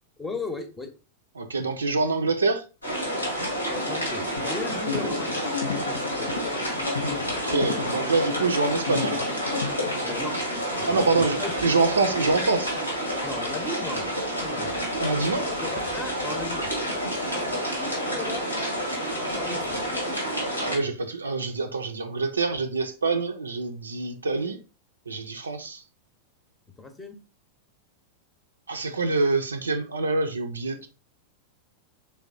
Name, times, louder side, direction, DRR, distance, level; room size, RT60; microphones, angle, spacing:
voice 1, 0.2-0.9 3.7-4.2 4.5-5.5 5.9-6.3 10.0-10.4 10.8-11.6 13.2-14.0 14.4-14.7 15.6-16.7 17.1-17.4 17.8-18.5 19.4-19.8 26.8-27.1, left 2 dB, 10° left, 0.8 m, -36 dB
voice 2, 1.4-2.6 7.1-9.2 10.9-12.7 14.8-15.5 20.6-24.6 25.1-25.8 28.7-30.9, right 3 dB, 75° right, 0.4 m, -26 dB
sound 1, 2.8-20.8, equal, 85° left, 1.3 m, -29 dB
sound 2, 4.4-10.4, left 6 dB, 65° left, 0.5 m, -33 dB
4.5 x 3.4 x 2.5 m
figure-of-eight pair, 90°, 0 cm